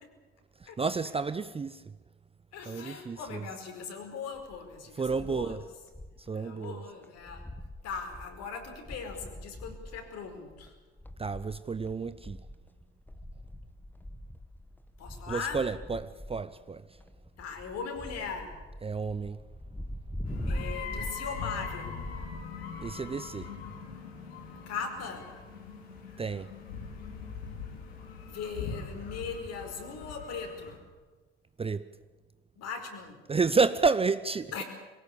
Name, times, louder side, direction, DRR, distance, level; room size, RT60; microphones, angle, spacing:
voice 1, 0.6-1.8 2.7-3.4 5.0-5.6 6.3-6.8 11.2-12.4 15.3-16.8 18.8-19.4 22.8-23.5 26.2-26.5 31.6-31.9 33.3-34.6, right 4 dB, 20° right, 0.7 m, -30 dB
voice 2, 2.5-5.6 6.3-7.5 7.8-10.7 15.0-15.6 17.4-18.6 20.4-22.0 24.7-25.3 28.2-30.8 32.5-33.2 34.5-34.6, left 5 dB, 55° left, 4.9 m, -39 dB
sound 1, 4.3-6.3 6.6-6.7 7.0-23.3, equal, 5° left, 1.2 m, -43 dB
sound 2, 20.2-30.8, left 5 dB, 75° left, 3.9 m, -41 dB
22.0 x 18.5 x 8.6 m
hypercardioid pair, 65°, 31 cm